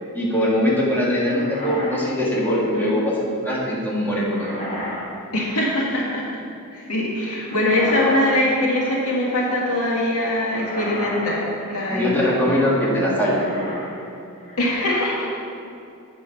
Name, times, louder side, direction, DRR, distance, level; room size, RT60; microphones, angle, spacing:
voice 1, 0.1-3.1 3.4-4.6 11.8-13.8, left 1 dB, 10° left, -6 dB, 1.6 m, -21 dB
sound 1, 1.2-2.8 4.1-5.1 5.4-6.0 7.4-8.4 8.6-9.2 10.4-12.1 13.2-14.0 14.4-14.8, left 1 dB, 35° left, 2.1 m, -34 dB
voice 2, 5.3-6.2 6.7-11.4 11.7-12.3 14.6-15.3, left 1 dB, 75° left, -4 dB, 1.9 m, -22 dB
8.3 x 5.5 x 5.6 m, 2.7 s
head